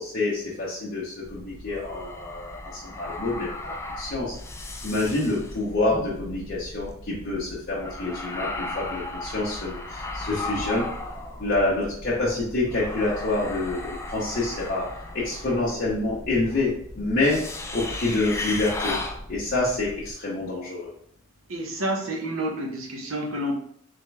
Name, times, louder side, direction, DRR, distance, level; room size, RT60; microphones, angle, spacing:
voice 1, 0.0-2.6 3.0-4.3 4.8-10.9 11.4-13.8 14.1-14.8 15.2-16.7 16.9-17.4 17.7-18.9 19.3-20.9, left 2 dB, 50° left, -8 dB, 1.0 m, -27 dB
sound 1, 1.2-20.1, left 2 dB, 15° left, 0.4 m, -36 dB
voice 2, 21.5-23.6, right 1 dB, 85° right, 1 dB, 1.0 m, -29 dB
3.7 x 3.4 x 3.3 m, 0.64 s
head